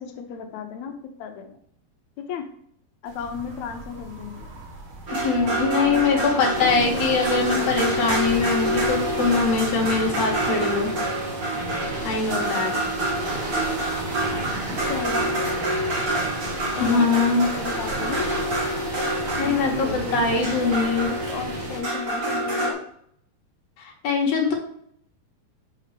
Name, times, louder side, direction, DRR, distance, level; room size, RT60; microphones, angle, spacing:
voice 1, 0.0-1.6 2.2-2.5 3.0-4.5 5.5-8.5 14.7-15.6 16.7-18.5 19.4-20.9 21.3-22.8, left 6 dB, 90° left, 5 dB, 1.6 m, -34 dB
sound 1, 3.0-22.7, right 2 dB, 75° right, 1.2 m, -43 dB
sound 2, 5.1-22.7, right 1 dB, 55° right, 1.0 m, -27 dB
voice 2, 5.2-10.9 12.0-12.7 16.8-17.5 19.4-21.1 23.8-24.5, left 4 dB, 55° left, 0 dB, 2.2 m, -22 dB
sound 3, 6.5-21.8, right 1 dB, 35° right, 3.8 m, -33 dB
5.7 x 5.5 x 5.0 m, 0.66 s
omnidirectional pair, 4.3 m